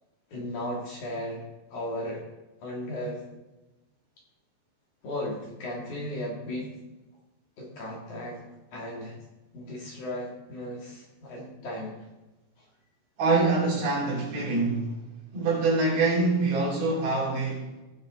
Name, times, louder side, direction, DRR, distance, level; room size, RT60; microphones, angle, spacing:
voice 1, 0.3-1.4 1.7-2.2 2.6-3.2 5.0-6.7 7.6-8.4 8.7-9.2 9.5-11.9 12.6-12.7, left 1 dB, 50° left, 3.0 m, -35 dB
voice 2, 13.2-15.0 15.3-17.7, right 3 dB, 60° right, 4.4 m, -25 dB
16.0 x 7.3 x 3.9 m
omnidirectional pair, 4.9 m